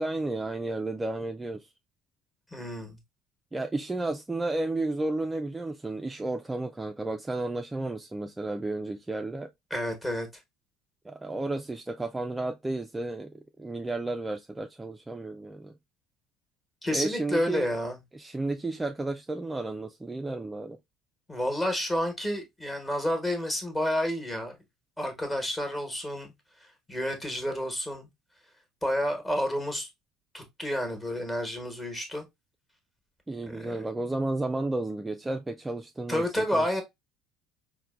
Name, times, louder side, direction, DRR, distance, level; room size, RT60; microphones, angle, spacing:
voice 1, 0.0-1.7 3.5-9.5 11.0-15.7 16.9-17.7 18.1-20.8 33.3-36.3 36.5-36.7, right 2 dB, 15° right, 0.3 m, -32 dB
voice 2, 2.5-3.0 9.7-10.3 16.8-18.0 21.3-24.6 25.0-26.3 26.6-28.1 28.8-29.9 30.3-32.3 33.4-33.8 36.1-36.8, equal, 15° left, 1.1 m, -30 dB
4.4 x 2.1 x 2.3 m
hypercardioid pair, 65°, 0 cm